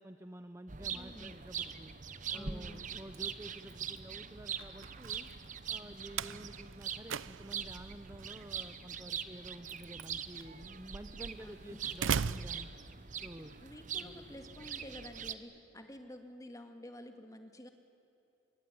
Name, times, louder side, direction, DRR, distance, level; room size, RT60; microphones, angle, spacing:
voice 1, 0.0-1.9 2.3-5.3 5.7-12.7 13.2-13.5 14.0-14.2, right 1 dB, 15° right, 9 dB, 0.7 m, -50 dB
sound 1, 0.7-15.3, right 7 dB, 40° right, 1.0 m, -43 dB
voice 2, 0.9-1.4 2.3-2.8 11.4-11.8 13.4-17.7, left 1 dB, 15° left, 6 dB, 2.0 m, -50 dB
Slam, 2.5-13.4, right 6 dB, 80° right, 0.6 m, -42 dB
26.0 x 23.0 x 9.6 m, 2.8 s
head